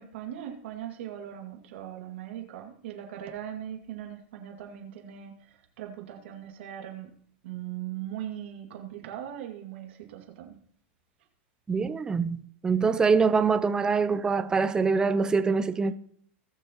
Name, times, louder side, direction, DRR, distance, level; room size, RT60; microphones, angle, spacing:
voice 1, 0.0-5.5 5.8-7.1 7.4-10.6, right 11 dB, 75° right, 2.2 m, -39 dB
voice 2, 11.7-15.9, right 5 dB, 10° right, 0.4 m, -24 dB
19.5 x 6.6 x 3.0 m
supercardioid pair, 140°, 6 cm